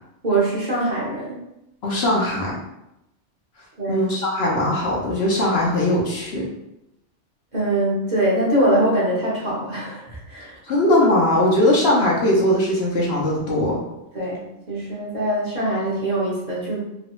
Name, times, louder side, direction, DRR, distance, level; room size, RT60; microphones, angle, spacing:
voice 1, 0.2-1.4 3.8-4.1 7.5-10.8 14.1-16.8, right 1 dB, 40° right, -6 dB, 1.0 m, -23 dB
voice 2, 1.8-2.6 3.9-6.5 10.7-13.8, left 1 dB, 60° left, -4 dB, 1.0 m, -20 dB
3.1 x 2.5 x 3.0 m, 0.87 s
omnidirectional pair, 1.2 m